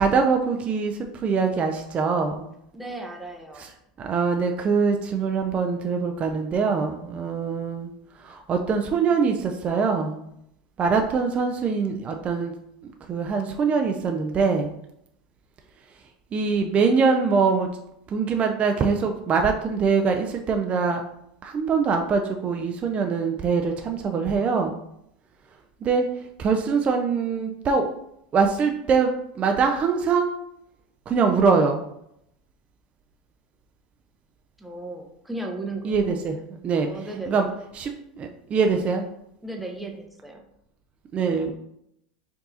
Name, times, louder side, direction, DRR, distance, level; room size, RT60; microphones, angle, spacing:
voice 1, 0.0-2.5 3.6-3.7 4.0-7.9 8.2-10.2 10.8-12.5 12.8-14.7 16.3-17.7 18.1-21.0 21.4-24.8 25.8-26.1 26.4-27.9 28.3-30.3 31.1-31.9 35.8-36.4 36.6-36.9 37.3-37.5 37.8-39.0 41.1-41.5, right 5 dB, 30° right, 4 dB, 0.4 m, -23 dB
voice 2, 2.7-3.7 34.6-36.1 36.8-37.5 39.4-40.4, right 2 dB, 5° right, 1 dB, 0.7 m, -35 dB
4.6 x 2.6 x 2.7 m, 0.78 s
hypercardioid pair, 95°, 4 cm